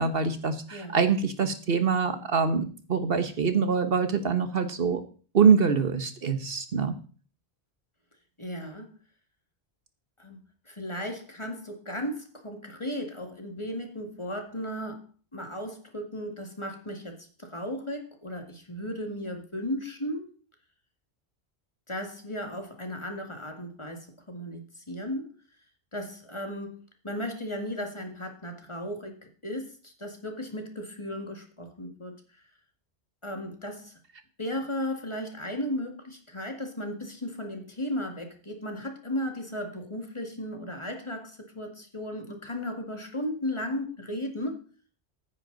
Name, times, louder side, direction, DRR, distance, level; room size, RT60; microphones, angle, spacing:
voice 1, 0.0-5.0 5.3-6.9, right 6 dB, 60° right, 10 dB, 1.3 m, -24 dB
voice 2, 8.4-8.9 10.2-10.4 10.7-15.0 15.3-20.3 21.9-24.6 24.9-25.3 25.9-26.8 27.0-32.1 33.2-33.9 34.4-44.7, equal, 25° left, 4 dB, 2.0 m, -35 dB
14.5 x 9.7 x 3.9 m, 0.39 s
omnidirectional pair, 1.1 m